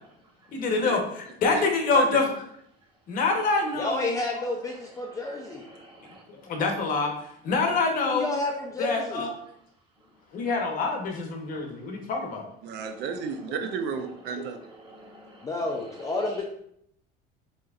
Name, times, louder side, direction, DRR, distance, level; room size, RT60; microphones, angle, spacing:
voice 1, 0.5-2.3 3.1-4.1 6.4-7.1 7.4-8.3 8.8-9.3 10.3-12.5, left 3 dB, 45° left, 2 dB, 0.9 m, -25 dB
voice 2, 3.7-5.7 8.0-9.3 15.4-16.4, left 2 dB, 15° left, -1 dB, 0.4 m, -30 dB
voice 3, 5.1-6.2 12.8-13.0 14.8-15.5, right 1 dB, 25° right, -1 dB, 1.1 m, -50 dB
voice 4, 12.6-14.6, right 6 dB, 60° right, 6 dB, 0.5 m, -33 dB
6.0 x 2.9 x 2.4 m, 0.71 s
cardioid pair, 145°, 20 cm